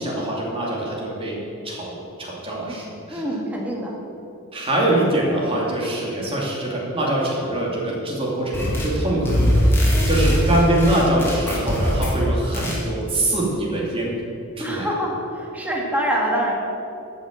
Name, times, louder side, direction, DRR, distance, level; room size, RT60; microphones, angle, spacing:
voice 1, 0.0-1.4 1.6-3.2 4.5-14.1 14.6-14.9, right 1 dB, 25° right, -4 dB, 2.6 m, -23 dB
voice 2, 2.7-3.9 10.3-10.5 14.6-16.5, equal, 5° right, -2 dB, 1.8 m, -26 dB
sound 1, 8.5-9.0 9.2-12.2 12.5-12.8, equal, 10° left, 2.2 m, -21 dB
12.0 x 6.0 x 7.6 m, 2.8 s
head